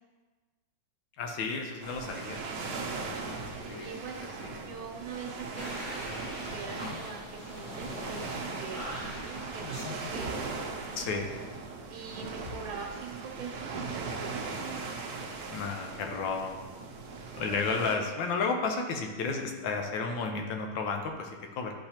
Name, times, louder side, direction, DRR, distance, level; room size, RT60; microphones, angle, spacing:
voice 1, 1.2-2.7 3.2-3.4 3.7-4.7 6.8-7.0 10.9-11.3 15.5-16.6 17.3-21.7, left 4 dB, 75° left, 3 dB, 1.4 m, -33 dB
sound 1, 1.8-18.0, right 4 dB, 65° right, 1.1 m, -39 dB
voice 2, 3.3-6.0 6.5-8.2 8.6-10.6 11.9-14.9, right 6 dB, 80° right, 1 dB, 1.5 m, -43 dB
sound 2, 5.6-10.7, equal, 50° left, 1.8 m, -42 dB
10.0 x 4.0 x 2.8 m, 1.3 s
omnidirectional pair, 2.2 m